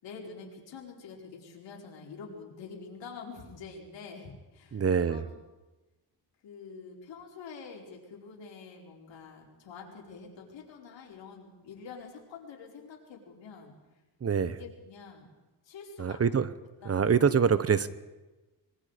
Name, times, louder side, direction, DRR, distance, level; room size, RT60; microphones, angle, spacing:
voice 1, 0.0-5.3 6.4-13.7 14.4-15.3 15.6-16.2 16.8-17.1, left 5 dB, 90° left, -1 dB, 5.2 m, -46 dB
voice 2, 4.7-5.2 14.2-14.6 16.0-16.5 16.9-17.9, right 6 dB, 35° right, 15 dB, 0.9 m, -25 dB
25.5 x 23.0 x 5.1 m, 1.1 s
cardioid pair, 125°, 43 cm